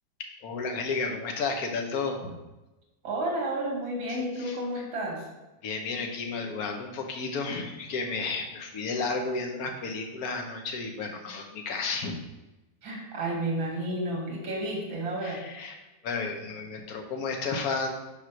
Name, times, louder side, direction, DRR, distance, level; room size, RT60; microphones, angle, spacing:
voice 1, 0.4-2.4 4.1-4.2 4.4-4.5 5.6-12.1 15.2-15.7 16.0-17.9, left 4 dB, 55° left, 3 dB, 1.3 m, -32 dB
voice 2, 3.0-5.3 12.8-15.4, right 1 dB, 80° right, -1 dB, 2.6 m, -31 dB
6.0 x 5.0 x 6.0 m, 1.0 s
omnidirectional pair, 2.1 m